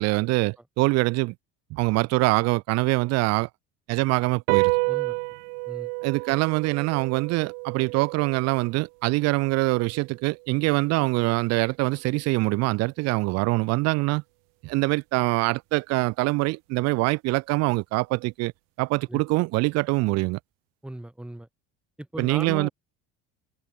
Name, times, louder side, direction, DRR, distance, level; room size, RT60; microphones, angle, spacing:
voice 1, 0.0-1.3 1.7-3.5 3.9-4.7 6.0-14.2 14.6-18.5 18.8-20.4 22.2-22.7, right 23 dB, 60° right, 2.2 m, -24 dB
sound 1, 4.5-11.2, right 40 dB or more, 85° right, 0.7 m, -31 dB
voice 2, 4.9-5.2 5.7-5.9 19.1-19.2 20.8-21.5 22.0-22.7, right 1 dB, 5° right, 3.4 m, -37 dB
cardioid pair, 170°, 29 cm